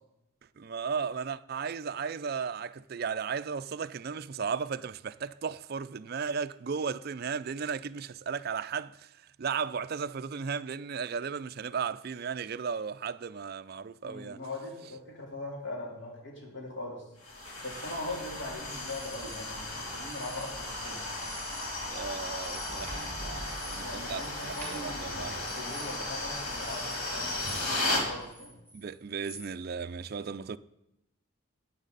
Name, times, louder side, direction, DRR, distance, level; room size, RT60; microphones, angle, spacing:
voice 1, 0.6-9.1 9.4-14.4 21.9-25.5 28.7-30.6, right 6 dB, 45° right, 0.4 m, -35 dB
voice 2, 14.0-17.0 17.6-21.0 23.8-28.5, left 2 dB, 55° left, 3.5 m, -41 dB
sound 1, 17.2-28.1, left 2 dB, 85° left, 3.4 m, -35 dB
sound 2, 18.7-19.4 20.0-20.8 21.1-21.7 22.0-27.9 28.2-29.5, right 1 dB, 10° left, 3.5 m, -49 dB
14.0 x 9.8 x 4.0 m
head